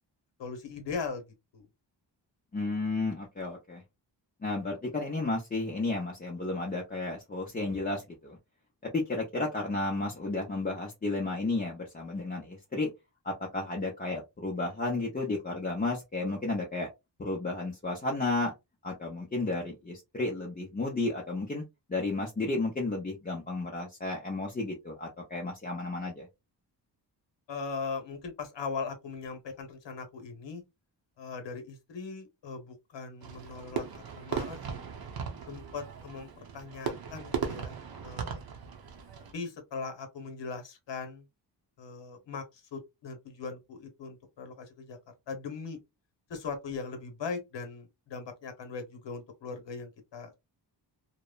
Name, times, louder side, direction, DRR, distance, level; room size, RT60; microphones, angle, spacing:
voice 1, 0.4-1.2 1.5-1.7 27.5-30.6 31.2-34.8 35.5-38.4 39.3-41.3 41.8-45.0 45.3-45.8 46.3-50.3, left 4 dB, 75° left, 0.9 m, -39 dB
voice 2, 2.5-3.8 4.4-8.4 8.8-12.9 13.2-16.9 17.2-18.5 18.8-21.6 21.9-26.3, left 2 dB, 20° left, 0.5 m, -32 dB
Fireworks, 33.2-39.3, right 6 dB, 55° right, 0.7 m, -38 dB
2.9 x 2.0 x 2.2 m
wide cardioid pair, 125°, 43 cm